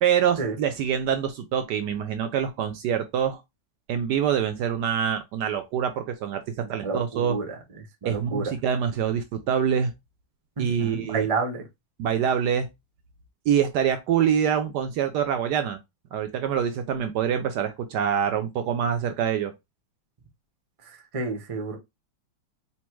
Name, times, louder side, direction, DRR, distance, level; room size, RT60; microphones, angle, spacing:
voice 1, 0.0-3.4 3.9-6.4 6.7-7.4 8.0-9.9 10.6-11.3 12.0-12.7 13.5-15.8 16.1-19.5, right 8 dB, 75° right, 1.0 m, -25 dB
voice 2, 6.8-7.6 8.0-8.5 10.6-11.6 21.1-21.8, right 4 dB, 50° right, 0.4 m, -29 dB
4.2 x 2.0 x 4.5 m
omnidirectional pair, 2.2 m